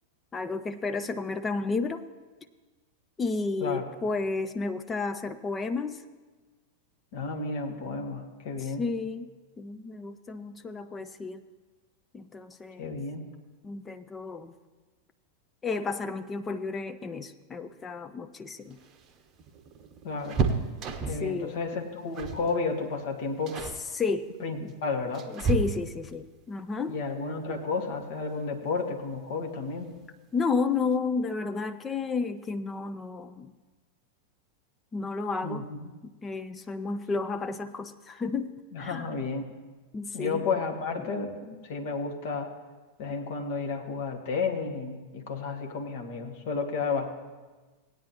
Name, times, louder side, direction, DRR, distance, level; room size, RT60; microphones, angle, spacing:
voice 1, 0.3-2.1 3.2-6.0 8.6-11.4 12.1-12.9 13.6-14.5 15.6-18.8 21.1-21.6 23.9-24.3 24.6-24.7 25.3-27.0 30.3-33.5 34.9-35.7 36.0-39.1 39.9-40.5, left 4 dB, 15° left, 10 dB, 0.4 m, -32 dB
voice 2, 7.1-8.8 12.8-13.2 20.0-20.4 21.0-23.6 24.4-24.6 24.8-25.3 26.9-29.9 35.4-35.9 38.7-39.5 40.1-42.5 43.0-47.1, left 4 dB, 50° left, 3 dB, 1.3 m, -32 dB
sound 1, 18.6-21.3 22.1-22.5 22.8-23.0 23.5-23.8 24.7-26.1 27.9-28.0 28.4-28.5 29.6-30.1 30.4-30.5 30.8-31.0, right 4 dB, 30° right, 0.8 m, -31 dB
17.5 x 9.3 x 3.0 m, 1.3 s
figure-of-eight pair, 90°, 0 cm